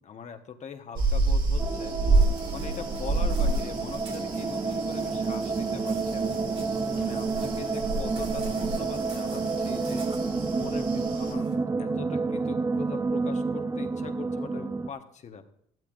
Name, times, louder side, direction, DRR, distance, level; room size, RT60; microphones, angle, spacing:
voice 1, 0.0-6.5 7.0-15.5, left 7 dB, 45° left, 6 dB, 1.3 m, -42 dB
sound 1, 1.0-11.3, right 2 dB, 60° right, 4.3 m, -29 dB
sound 2, 1.6-14.9, right 4 dB, 20° right, 0.7 m, -30 dB
sound 3, 2.1-11.6, right 3 dB, 35° right, 3.4 m, -49 dB
14.5 x 12.0 x 2.6 m, 0.69 s
cardioid pair, 110°, 17 cm